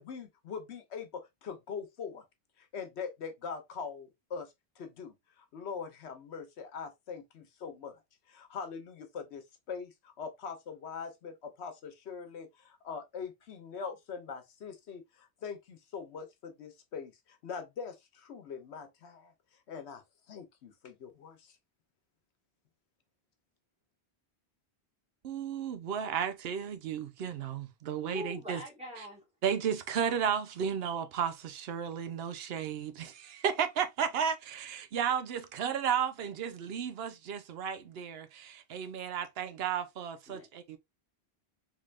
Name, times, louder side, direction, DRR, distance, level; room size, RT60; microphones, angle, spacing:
voice 1, 0.0-2.2 2.7-4.5 4.8-5.1 5.5-7.9 8.3-15.0 15.4-17.1 17.4-18.0 18.2-19.3 19.7-20.0 20.3-21.4, left 6 dB, 80° left, 1.1 m, -42 dB
voice 2, 25.2-28.6 29.0-29.1 29.4-40.8, right 8 dB, 70° right, 0.8 m, -33 dB
voice 3, 28.0-29.2 40.3-40.5, equal, 5° right, 1.6 m, -43 dB
3.6 x 3.3 x 2.4 m
omnidirectional pair, 1.1 m